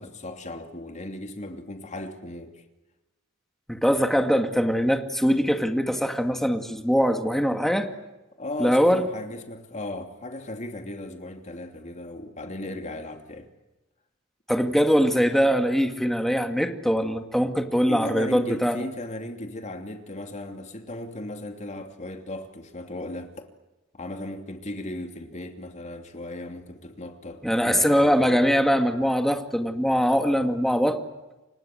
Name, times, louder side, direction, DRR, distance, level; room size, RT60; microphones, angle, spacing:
voice 1, 0.0-2.6 8.4-13.5 17.9-23.5 23.9-28.6, left 1 dB, 35° left, 2.9 m, -36 dB
voice 2, 3.7-7.9 8.6-9.1 14.5-18.8 27.4-31.0, equal, ahead, 2.2 m, -22 dB
29.5 x 25.5 x 7.9 m
head